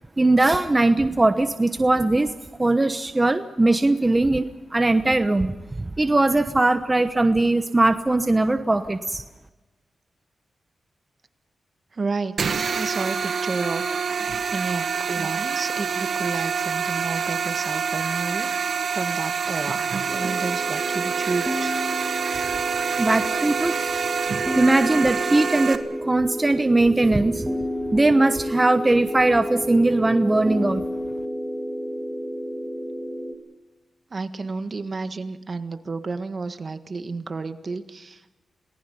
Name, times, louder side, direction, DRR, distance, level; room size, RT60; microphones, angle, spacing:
voice 1, 0.2-2.3 2.6-9.2 23.0-23.9 24.6-27.5 27.9-30.8, right 2 dB, 20° right, 9 dB, 1.0 m, -20 dB
voice 2, 11.9-21.7 34.1-38.4, right 4 dB, 45° right, 9 dB, 1.6 m, -31 dB
sound 1, 12.4-25.8, right 6 dB, 65° right, 1.6 m, -26 dB
sound 2, 20.1-33.3, equal, 5° right, 2.2 m, -31 dB
28.5 x 19.5 x 5.5 m, 1.1 s
cardioid pair, 70°, 0 cm